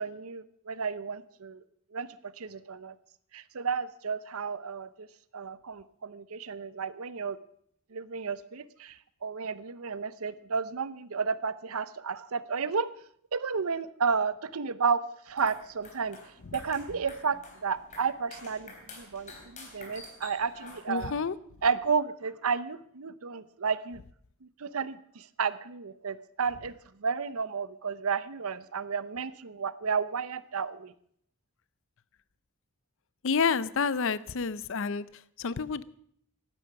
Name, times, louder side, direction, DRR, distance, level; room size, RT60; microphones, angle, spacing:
voice 1, 0.0-1.6 1.9-2.1 2.4-2.9 3.3-5.1 5.3-7.4 7.9-12.9 13.3-15.0 15.3-16.2 16.5-21.1 21.6-24.0 24.4-26.7 27.0-30.9, right 5 dB, 75° right, 16 dB, 0.7 m, -32 dB
sound 1, 15.3-21.3, left 3 dB, 35° left, 3.9 m, -49 dB
voice 2, 20.9-21.4 33.2-35.8, left 5 dB, 60° left, 18 dB, 0.6 m, -29 dB
15.5 x 11.5 x 6.0 m, 0.64 s
head